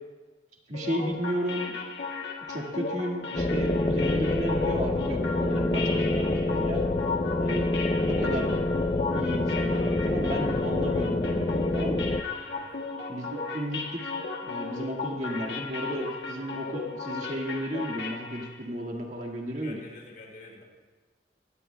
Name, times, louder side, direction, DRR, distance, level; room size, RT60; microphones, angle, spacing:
sound 1, 0.7-18.6, left 4 dB, 85° left, 1.7 m, -36 dB
voice 1, 0.7-1.7 2.5-6.8 7.4-7.7 8.1-8.5 9.1-12.0 13.1-14.1 14.4-19.8, equal, 40° right, 0 dB, 1.8 m, -33 dB
sound 2, 3.3-12.2, left 2 dB, 30° left, 0.5 m, -27 dB
voice 2, 19.6-20.6, left 2 dB, 55° left, 0 dB, 3.9 m, -47 dB
23.5 x 17.5 x 2.3 m, 1.3 s
head